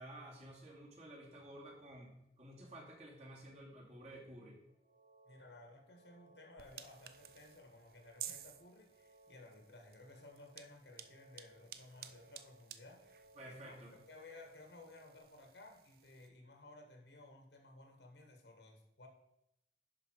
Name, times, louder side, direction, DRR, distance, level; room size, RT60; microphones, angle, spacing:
voice 1, 0.0-4.6 13.4-14.0, right 1 dB, 40° right, -2 dB, 2.4 m, -53 dB
sound 1, 4.7-15.2, right 1 dB, 75° right, 3.6 m, -66 dB
voice 2, 5.3-19.1, left 2 dB, 80° left, 3 dB, 2.0 m, -57 dB
sound 2, 6.6-16.3, right 10 dB, 55° right, 0.5 m, -54 dB
11.0 x 5.1 x 4.8 m, 0.84 s
head